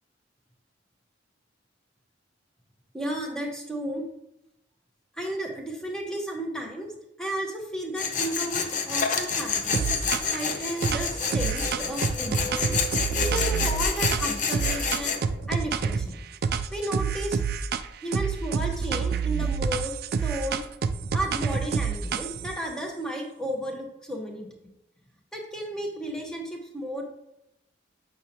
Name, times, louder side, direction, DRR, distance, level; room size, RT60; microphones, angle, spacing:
voice 1, 2.9-4.0 5.2-6.9 7.2-9.8 10.3-12.8 13.1-15.2 15.5-16.2 16.7-17.4 18.0-19.9 20.2-20.6 21.1-24.5 25.3-27.1, right 1 dB, 5° left, 0 dB, 1.0 m, -33 dB
Tools, 8.0-15.2, left 5 dB, 45° left, 0.6 m, -28 dB
sound 1, 9.3-15.5, left 1 dB, 75° left, 1.3 m, -43 dB
sound 2, 9.7-10.5 10.8-16.1 16.4-17.9 18.1-22.6, right 5 dB, 55° right, 0.3 m, -28 dB
7.9 x 5.2 x 2.9 m, 0.86 s
head